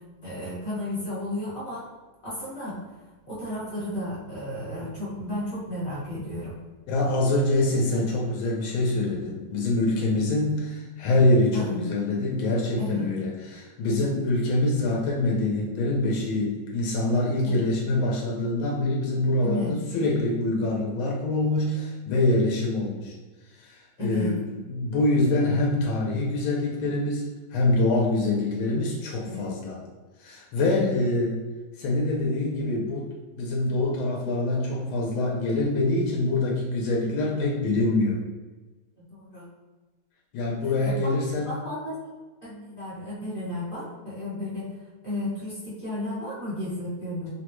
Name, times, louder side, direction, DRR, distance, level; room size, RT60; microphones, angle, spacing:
voice 1, 0.2-1.9 2.2-2.8 3.3-6.6 11.5-11.9 12.8-13.1 17.4-17.6 19.4-19.8 24.0-24.3 29.2-29.5 30.6-30.9 39.0-39.5 40.6-41.1 41.5-42.1 42.4-44.7 45.0-47.3, left 1 dB, 35° left, -9 dB, 0.9 m, -33 dB
voice 2, 6.9-23.2 23.6-29.8 30.2-31.4 31.8-33.1 33.3-38.2 40.3-41.5, left 2 dB, 85° left, -2 dB, 1.4 m, -25 dB
3.6 x 2.1 x 3.0 m, 1.3 s
omnidirectional pair, 2.2 m